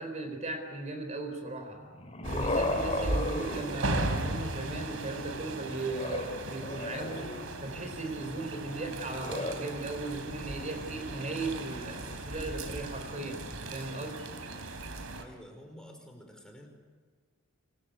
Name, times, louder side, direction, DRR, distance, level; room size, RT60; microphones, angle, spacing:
voice 1, 0.0-1.8 2.3-7.3 7.6-14.2, right 2 dB, 35° right, 5 dB, 4.1 m, -37 dB
sound 1, 1.8-4.4 5.9-7.7 9.0-9.5, left 2 dB, 30° left, 3.2 m, -35 dB
sound 2, 2.2-15.2, right 2 dB, 90° right, 3.7 m, -37 dB
voice 2, 15.2-16.7, equal, 5° left, 3 dB, 5.1 m, -50 dB
26.5 x 23.5 x 9.6 m, 1.4 s
head